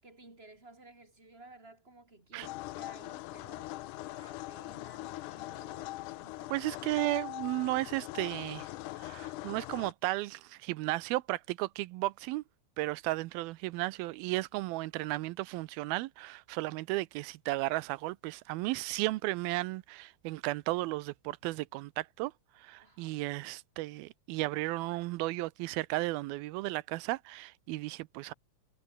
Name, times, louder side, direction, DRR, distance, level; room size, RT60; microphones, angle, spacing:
voice 1, 0.0-6.6 22.8-23.2, right 2 dB, 15° right, 6.3 m, -56 dB
sound 1, 2.4-9.9, left 18 dB, 80° left, 1.8 m, -42 dB
voice 2, 6.5-8.7 9.0-12.4 12.8-28.3, right 20 dB, 85° right, 2.6 m, -34 dB
omnidirectional pair, 4.2 m